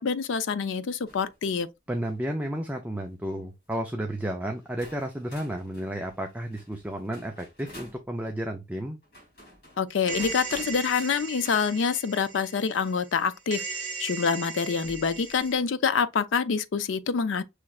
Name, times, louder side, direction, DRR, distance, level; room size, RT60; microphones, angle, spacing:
voice 1, 0.0-1.7 9.8-13.6 14.0-17.4, left 6 dB, 85° left, 0.4 m, -26 dB
sound 1, 1.1-1.4 1.9-2.2 3.0-3.3 4.2-4.3 4.8-8.0 9.0-11.6 13.4-13.5 14.8-15.5, left 1 dB, 50° left, 3.0 m, -48 dB
voice 2, 1.9-9.0, right 1 dB, 10° right, 0.4 m, -32 dB
sound 2, 10.1-13.2 13.5-15.5, right 5 dB, 40° right, 1.4 m, -38 dB
5.8 x 3.2 x 2.4 m
head